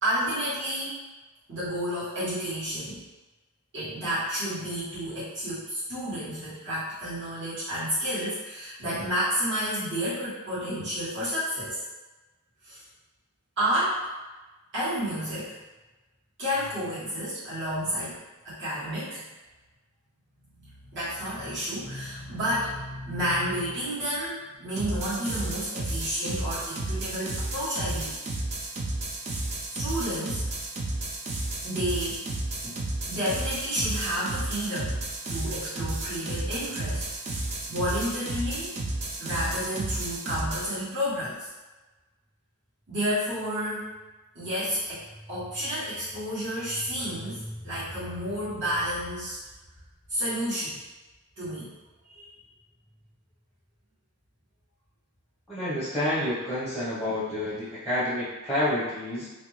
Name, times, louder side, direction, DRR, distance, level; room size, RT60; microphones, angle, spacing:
voice 1, 0.0-1.0 1.5-3.0 3.7-11.8 12.6-12.8 13.6-14.0 14.7-15.6 16.4-18.2 18.4-19.2 20.6-28.2 29.7-30.4 31.6-32.2 32.6-32.8 33.1-35.0 35.3-37.0 37.7-38.7 39.2-41.5 42.9-43.9 44.3-49.4 50.1-50.8 51.4-51.7 52.0-52.3, equal, 55° right, -12 dB, 1.2 m, -30 dB
sound 1, 24.8-40.8, right 2 dB, 30° right, 0.3 m, -32 dB
voice 2, 55.5-59.3, left 1 dB, ahead, -11 dB, 0.7 m, -29 dB
2.5 x 2.2 x 3.0 m, 1.2 s
head